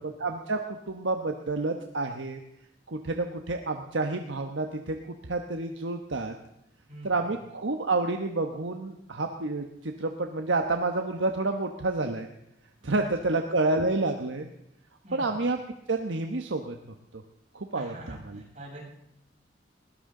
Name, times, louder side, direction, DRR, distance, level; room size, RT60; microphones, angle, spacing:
voice 1, 0.2-2.4 2.9-5.0 5.3-6.3 7.0-12.3 12.8-14.5 15.1-15.6 15.9-16.7 17.5-18.2, right 2 dB, 90° right, 4 dB, 1.2 m, -29 dB
voice 2, 6.9-7.3 12.8-13.1 15.0-15.4 17.7-18.8, right 1 dB, 40° right, -4 dB, 7.7 m, -45 dB
20.5 x 17.5 x 3.9 m, 0.81 s
head